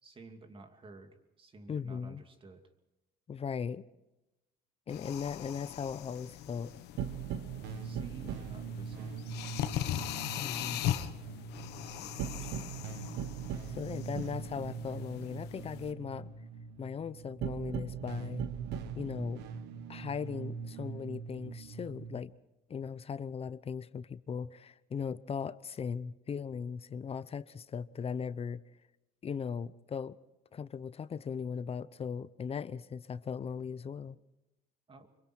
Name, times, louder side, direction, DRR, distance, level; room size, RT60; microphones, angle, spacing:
voice 1, 0.0-2.6 7.8-9.5 11.1-11.5 11.8-12.8 34.9-35.1, right 2 dB, 30° right, 2.7 m, -53 dB
voice 2, 1.7-2.2 3.3-3.9 4.9-6.7 10.4-10.8 13.7-16.3 16.8-18.5 19.0-19.4 19.9-22.3 22.7-28.6 29.2-30.2 30.5-34.2, left 6 dB, 35° left, 0.8 m, -38 dB
sound 1, 4.9-15.9, left 12 dB, 85° left, 1.3 m, -40 dB
sound 2, 7.0-22.2, right 7 dB, 90° right, 1.3 m, -41 dB
26.0 x 23.0 x 4.6 m
cardioid pair, 110°, 17 cm